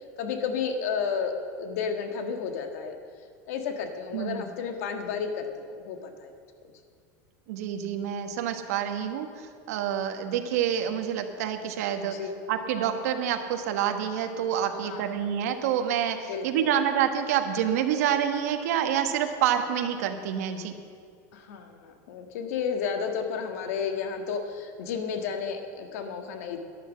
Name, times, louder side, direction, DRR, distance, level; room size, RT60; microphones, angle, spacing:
voice 1, 0.2-3.0 3.5-6.3 12.1-12.3 14.7-15.1 16.3-16.7 21.3-26.6, left 6 dB, 70° left, 5 dB, 1.6 m, -32 dB
voice 2, 4.1-4.4 7.5-12.1 12.5-20.8, right 9 dB, 75° right, 6 dB, 1.3 m, -27 dB
12.0 x 10.5 x 7.4 m, 2.1 s
supercardioid pair, 180°, 8 cm